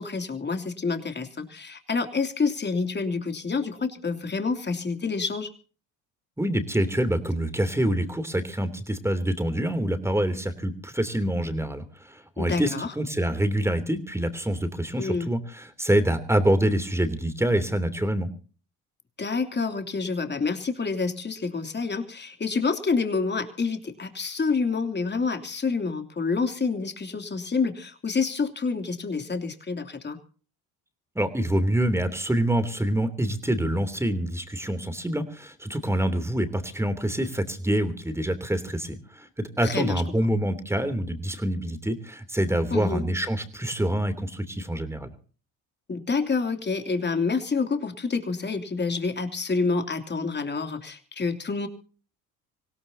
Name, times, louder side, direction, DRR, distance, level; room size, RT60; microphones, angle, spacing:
voice 1, 0.0-5.5 12.4-12.9 15.0-15.3 19.2-30.2 39.6-40.0 42.7-43.1 45.9-51.7, left 4 dB, 30° left, 6 dB, 3.0 m, -28 dB
voice 2, 6.4-18.3 31.1-45.1, right 1 dB, 5° right, 9 dB, 3.1 m, -26 dB
25.5 x 17.0 x 2.8 m, 0.40 s
supercardioid pair, 75°, 37 cm